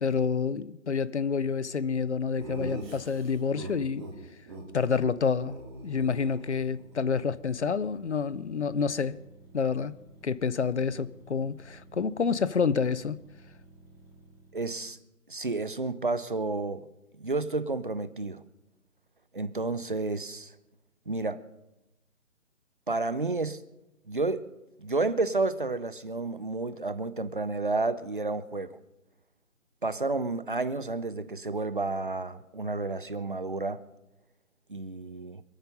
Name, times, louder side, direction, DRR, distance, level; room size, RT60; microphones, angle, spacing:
voice 1, 0.0-4.0 4.7-5.6 5.8-9.2 9.5-9.9 10.2-13.2, left 5 dB, 50° left, 0.6 m, -28 dB
Laughter, 2.4-4.1 4.5-4.6 4.9-5.1 5.4-6.9, right 2 dB, 15° right, 2.6 m, -41 dB
sound 1, 5.3-15.0, right 2 dB, 15° left, 4.5 m, -56 dB
voice 2, 14.5-15.0 15.3-16.9 17.2-18.4 19.3-20.5 21.1-21.4 22.9-23.6 24.1-24.4 24.8-28.8 29.8-33.8 34.7-35.4, right 3 dB, 35° right, 0.6 m, -31 dB
26.0 x 9.2 x 5.4 m
figure-of-eight pair, 165°, 45 cm